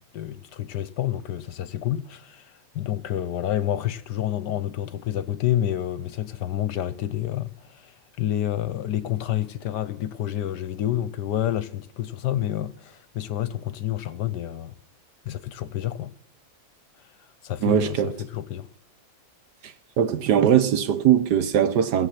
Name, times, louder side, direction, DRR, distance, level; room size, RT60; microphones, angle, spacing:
voice 1, 0.1-14.7 15.2-16.2 17.0-17.2 17.4-18.7, left 12 dB, 70° left, 1.2 m, -29 dB
voice 2, 17.6-18.1 19.6-22.1, right 9 dB, 65° right, 1.3 m, -21 dB
17.5 x 7.7 x 5.7 m
omnidirectional pair, 2.1 m